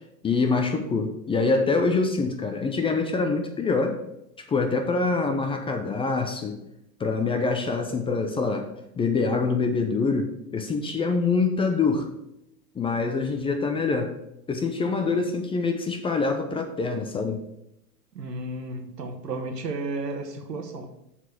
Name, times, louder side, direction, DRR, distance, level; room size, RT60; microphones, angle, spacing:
voice 1, 0.2-4.0 4.5-6.6 7.0-8.7 9.0-12.1 12.8-14.1 14.5-17.4, left 4 dB, 10° left, 5 dB, 0.5 m, -25 dB
voice 2, 18.1-20.9, right 2 dB, 90° right, 6 dB, 1.4 m, -33 dB
7.1 x 4.3 x 6.6 m, 0.83 s
hypercardioid pair, 110°, 48 cm